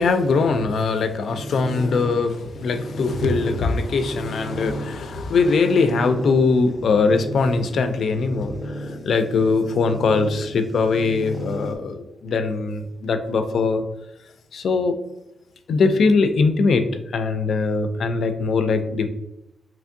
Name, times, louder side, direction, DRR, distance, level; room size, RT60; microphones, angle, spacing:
voice 1, 0.0-13.8 14.5-15.0 15.7-16.9 17.1-19.1, left 4 dB, 65° left, 8 dB, 0.3 m, -21 dB
sound 1, 1.3-11.8, right 1 dB, 15° left, 0.5 m, -34 dB
3.4 x 3.0 x 2.6 m, 0.85 s
wide cardioid pair, 125°, 0 cm